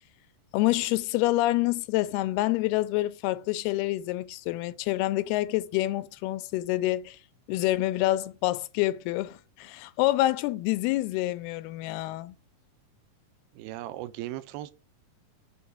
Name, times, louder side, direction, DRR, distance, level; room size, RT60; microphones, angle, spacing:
voice 1, 0.5-7.2 7.5-12.4, left 17 dB, 90° left, 2.6 m, -27 dB
voice 2, 13.5-14.7, right 15 dB, 85° right, 2.5 m, -37 dB
7.0 x 4.5 x 6.2 m
omnidirectional pair, 4.4 m